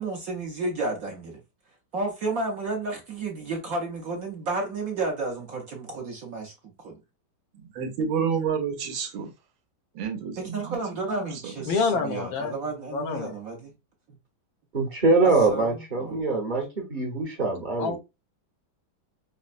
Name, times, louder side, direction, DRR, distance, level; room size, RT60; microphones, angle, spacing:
voice 1, 0.0-1.4 1.9-7.0 10.4-13.7 15.2-16.2, right 3 dB, 60° right, 1.0 m, -32 dB
voice 2, 7.5-9.3 9.9-10.8 11.4-11.5, right 6 dB, 80° right, 1.6 m, -29 dB
voice 3, 11.7-12.6 12.9-13.4 17.8-18.0, left 4 dB, 80° left, 1.5 m, -27 dB
voice 4, 14.7-18.0, right 3 dB, 35° right, 0.8 m, -23 dB
5.2 x 2.1 x 2.4 m
omnidirectional pair, 2.2 m